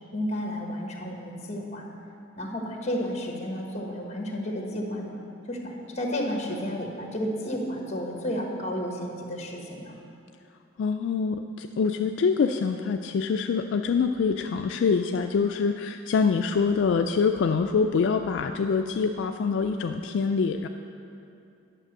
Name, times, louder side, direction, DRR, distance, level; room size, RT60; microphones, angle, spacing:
voice 1, 0.1-1.9 2.4-5.2 5.5-10.0, equal, 35° left, 0 dB, 1.3 m, -32 dB
voice 2, 10.8-20.7, left 5 dB, 70° left, 5 dB, 0.3 m, -25 dB
10.0 x 5.9 x 6.5 m, 2.7 s
head